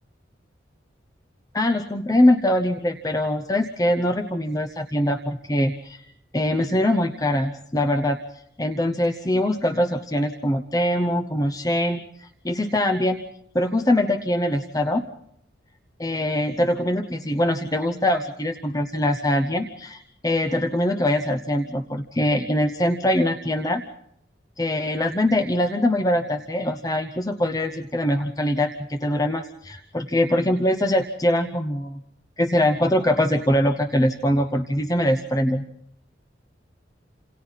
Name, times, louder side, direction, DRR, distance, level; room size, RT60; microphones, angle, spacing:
voice 1, 1.5-6.0 6.3-8.2 8.6-13.2 13.5-15.0 16.0-23.8 24.6-32.0 32.4-35.6, left 1 dB, 20° left, 7 dB, 0.9 m, -23 dB
29.5 x 27.5 x 4.1 m, 0.74 s
head